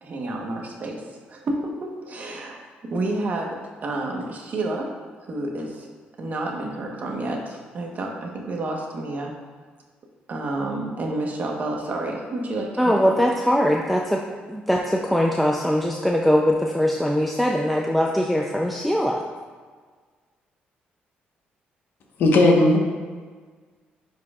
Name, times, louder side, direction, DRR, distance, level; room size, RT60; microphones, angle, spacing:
voice 1, 0.0-5.0 5.2-5.9 6.2-9.3 10.3-13.2, right 2 dB, 50° right, 1 dB, 1.1 m, -30 dB
voice 2, 12.8-14.2 14.5-19.2, equal, ahead, 0 dB, 0.4 m, -21 dB
voice 3, 22.2-22.8, left 2 dB, 70° left, 0 dB, 1.1 m, -16 dB
9.9 x 4.7 x 2.4 m, 1.5 s
cardioid pair, 100°, 4 cm